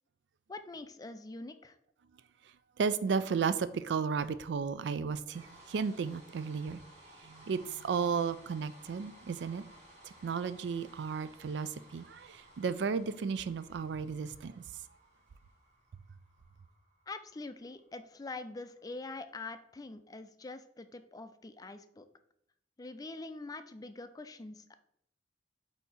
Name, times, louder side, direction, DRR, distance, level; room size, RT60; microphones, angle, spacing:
voice 1, 0.5-1.8 17.1-22.1 22.8-24.8, left 3 dB, 20° left, 0.4 m, -44 dB
voice 2, 2.8-6.8 7.2-9.6 10.0-14.6, right 5 dB, 75° right, 0.4 m, -34 dB
sound 1, 5.2-19.4, right 1 dB, 40° right, 2.0 m, -58 dB
8.0 x 2.8 x 4.2 m
head